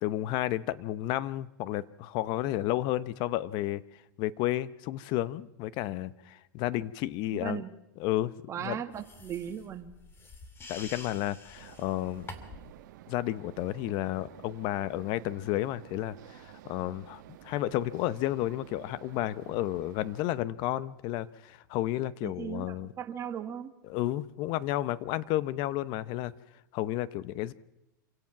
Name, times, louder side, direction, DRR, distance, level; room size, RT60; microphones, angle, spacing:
voice 1, 0.0-3.8 4.2-7.6 8.0-8.3 8.6-8.8 10.7-12.3 13.1-22.9 23.8-26.3 26.7-27.5, left 14 dB, 45° left, 17 dB, 0.9 m, -32 dB
voice 2, 7.3-7.7 8.5-9.9 22.2-23.7, right 9 dB, 30° right, 7 dB, 1.7 m, -37 dB
sound 1, 8.9-12.7, left 3 dB, 20° left, 2.6 m, -47 dB
sound 2, 11.6-20.3, right 13 dB, 65° right, 1.3 m, -52 dB
27.0 x 17.0 x 6.0 m, 0.89 s
hypercardioid pair, 120°, 11 cm